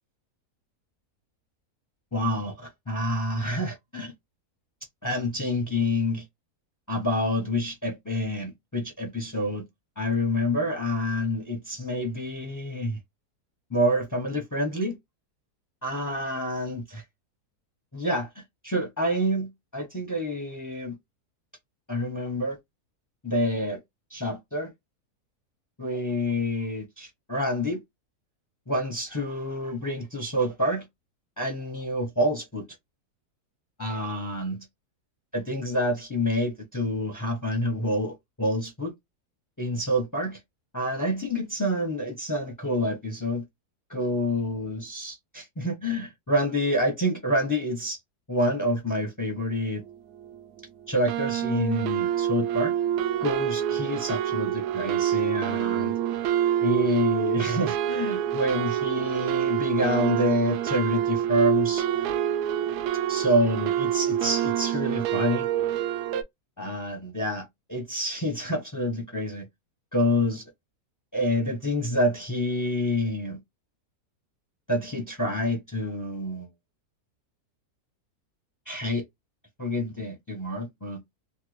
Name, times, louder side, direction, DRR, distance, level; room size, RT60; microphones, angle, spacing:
voice 1, 2.1-4.1 5.0-6.2 6.9-9.6 10.0-13.0 13.7-15.0 15.8-17.0 17.9-18.3 18.6-20.9 21.9-22.6 23.2-23.8 24.1-24.7 25.8-27.8 28.7-30.8 31.4-32.6 33.8-34.6 35.3-38.9 39.6-40.4 40.7-43.4 43.9-48.0 48.3-49.8 50.9-52.7 53.2-55.9 56.6-61.9 63.1-65.5 66.6-69.4 69.9-70.4 71.1-73.4 74.7-76.5 78.7-79.0 79.6-81.0, equal, 30° left, 0.3 m, -27 dB
sound 1, 49.9-50.0 50.2-50.6 51.1-66.2, right 10 dB, 85° right, 1.1 m, -26 dB
3.2 x 2.2 x 3.1 m
omnidirectional pair, 1.7 m